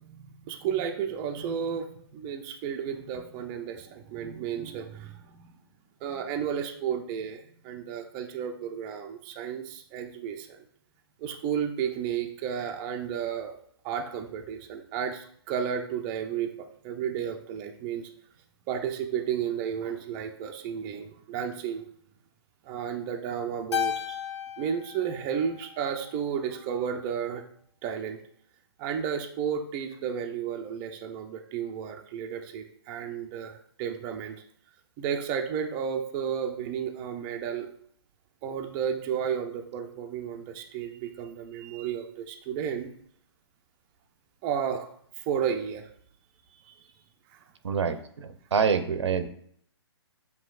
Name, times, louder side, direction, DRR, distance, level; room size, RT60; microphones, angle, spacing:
voice 1, 0.0-5.6 6.0-10.6 11.2-13.6 13.8-18.1 18.7-21.9 22.6-24.2 24.6-27.4 27.8-28.2 28.8-34.4 35.0-37.7 38.4-42.9 44.4-44.9 45.2-45.8 46.6-46.8 47.3-47.4, right 8 dB, 20° right, 4 dB, 0.3 m, -32 dB
Keyboard (musical), 23.7-26.2, left 9 dB, 80° left, 0.4 m, -34 dB
voice 2, 47.6-49.3, right 6 dB, 80° right, 9 dB, 0.5 m, -26 dB
7.4 x 2.7 x 2.3 m, 0.63 s
hypercardioid pair, 140°, 14 cm